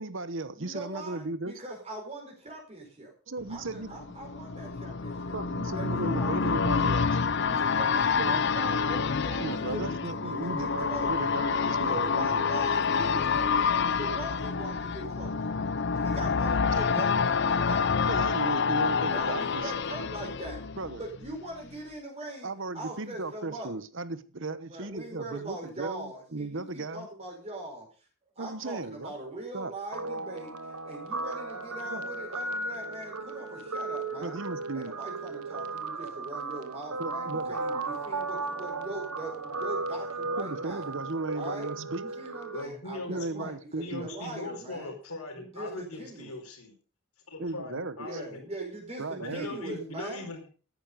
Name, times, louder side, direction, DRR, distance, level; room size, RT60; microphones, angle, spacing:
voice 1, 0.0-1.5 3.3-4.0 5.3-7.1 8.2-8.4 9.4-12.6 18.1-19.7 20.8-21.0 22.4-27.1 28.4-29.1 29.5-29.7 31.9-32.1 34.2-35.0 37.0-37.6 40.4-42.0 43.1-44.1 47.4-48.1 49.0-49.5, right 3 dB, 60° right, 14 dB, 1.1 m, -36 dB
voice 2, 0.5-3.1 3.5-5.4 5.8-6.9 7.5-11.1 11.9-15.4 15.9-17.9 19.1-20.6 21.0-22.5 22.7-23.7 24.7-27.9 28.4-34.4 34.7-41.0 41.3-41.7 42.0-44.9 45.4-46.3 48.0-50.3, right 2 dB, 30° right, 0 dB, 4.6 m, -41 dB
sound 1, 3.5-21.3 21.7-21.8, left 5 dB, 50° left, 0.6 m, -28 dB
Guitar, 29.9-42.6, right 3 dB, 85° right, 1.4 m, -35 dB
voice 3, 42.5-43.5 43.8-46.7 47.3-48.4 49.2-50.5, left 2 dB, 80° left, 4 dB, 4.6 m, -40 dB
14.0 x 10.5 x 5.2 m, 0.37 s
head